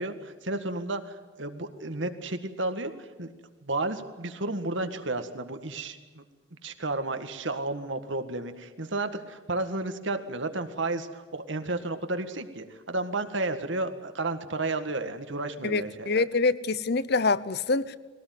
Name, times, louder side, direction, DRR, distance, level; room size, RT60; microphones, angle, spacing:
voice 1, 0.0-3.3 3.6-6.2 6.6-16.1, right 2 dB, 65° right, 1.8 m, -32 dB
voice 2, 15.6-18.0, left 3 dB, 55° left, 0.8 m, -25 dB
22.0 x 17.5 x 9.4 m
head